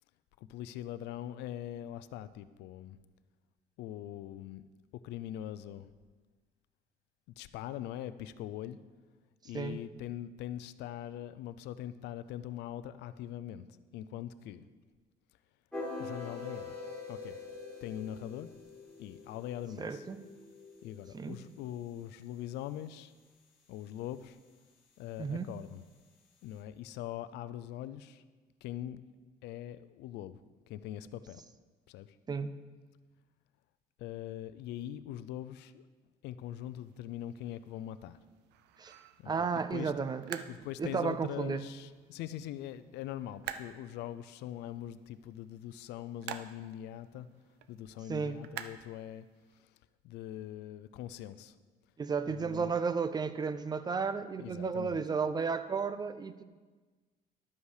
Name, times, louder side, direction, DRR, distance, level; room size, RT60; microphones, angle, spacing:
voice 1, 0.5-3.0 3.8-4.6 5.0-5.9 7.4-8.8 9.4-13.7 13.9-14.6 16.0-16.8 17.1-17.4 17.8-18.5 19.0-20.0 20.8-23.1 23.7-24.4 25.0-25.8 26.4-28.2 28.6-29.0 29.4-30.4 30.7-31.4 31.9-32.1 34.0-35.8 36.2-38.2 39.2-40.1 40.5-47.3 47.7-49.3 49.6-49.7 50.0-51.5 52.2-52.7 54.4-55.0, left 12 dB, 85° left, 14 dB, 0.5 m, -42 dB
sound 1, 15.7-21.8, left 3 dB, 5° left, 4.0 m, -45 dB
voice 2, 19.8-20.2 21.1-21.4 25.2-25.5 32.3-32.6 38.8-38.9 39.3-40.4 40.8-41.7 48.1-48.4 52.0-56.4, right 5 dB, 25° right, 13 dB, 0.6 m, -33 dB
sound 2, 36.4-49.6, right 10 dB, 85° right, 0.6 m, -50 dB
12.0 x 8.2 x 4.9 m, 1.3 s
cardioid pair, 110°, 17 cm